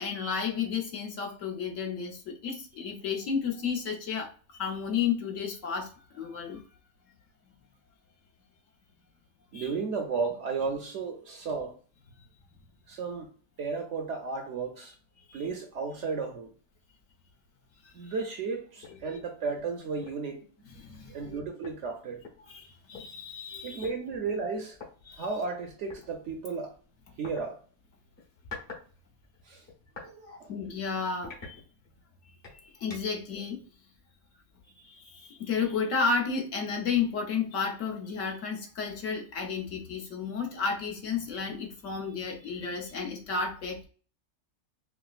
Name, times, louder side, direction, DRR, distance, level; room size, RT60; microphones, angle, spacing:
voice 1, 0.0-6.6 9.5-9.7 15.3-15.4 17.8-18.1 19.0-19.2 20.8-21.4 22.4-23.9 25.0-25.3 30.0-30.1 30.5-31.6 32.6-33.6 34.8-43.8, left 5 dB, 65° left, 1.1 m, -32 dB
voice 2, 9.5-11.8 12.9-13.3 13.6-14.9 15.3-16.5 17.9-20.4 21.1-22.2 23.6-24.8 25.1-26.8 27.2-27.6 29.5-29.6 30.0-30.5, right 4 dB, 65° right, 0.8 m, -34 dB
sound 1, 18.8-19.0 19.5-19.6 20.0-20.3 21.3-21.4 21.6-23.0 23.8-24.0 24.7-24.9 25.9-26.1 27.2-27.4 28.2-28.9 29.2-30.1 30.6-30.7 31.2-32.0 32.4-33.2, left 4 dB, 45° left, 1.2 m, -45 dB
4.7 x 2.0 x 2.4 m
omnidirectional pair, 1.5 m